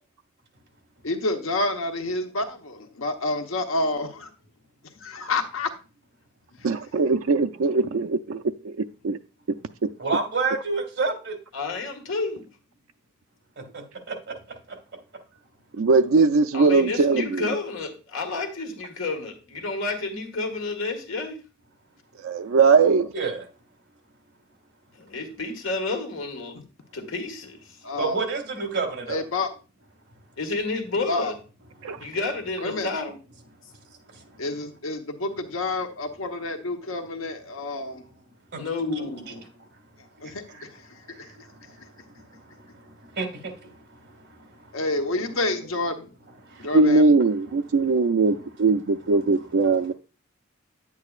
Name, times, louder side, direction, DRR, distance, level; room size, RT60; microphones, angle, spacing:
voice 1, 1.0-4.3 5.0-5.7 27.8-28.2 29.1-29.5 31.1-31.3 32.6-32.9 34.4-38.0 40.2-40.7 41.2-41.3 44.7-46.1 46.6-47.1, left 2 dB, 85° left, 1.0 m, -28 dB
voice 2, 6.6-8.8 9.0-9.2 9.8-9.9 15.8-17.5 22.2-23.1 31.8-32.0 46.7-49.9, right 4 dB, 75° right, 0.4 m, -20 dB
voice 3, 10.0-11.4 13.6-14.8 23.1-23.4 28.0-29.2 31.9-32.1 34.1-34.4 38.5-38.6 38.9-39.1 40.2-40.7 41.1-44.8 46.5-46.7 49.0-49.3, right 4 dB, 55° right, 2.1 m, -31 dB
voice 4, 11.5-12.4 16.5-21.4 25.0-26.6 26.9-27.8 30.4-31.4 32.0-33.2 38.6-39.4, left 3 dB, 70° left, 1.7 m, -30 dB
9.5 x 8.4 x 2.4 m
head